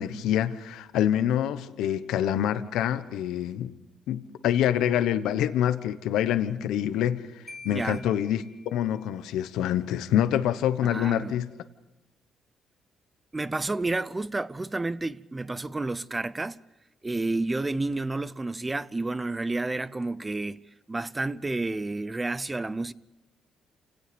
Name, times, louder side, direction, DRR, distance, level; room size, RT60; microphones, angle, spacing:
voice 1, 0.0-3.7 4.1-11.5, left 10 dB, 90° left, 1.1 m, -26 dB
Marimba xylophone, 7.5-9.2, left 3 dB, 10° left, 3.2 m, -48 dB
voice 2, 7.6-8.1 10.8-11.3 13.3-16.6 17.0-20.6 20.9-22.9, right 2 dB, 20° right, 0.7 m, -30 dB
28.5 x 18.0 x 5.3 m
cardioid pair, 90°, 0 cm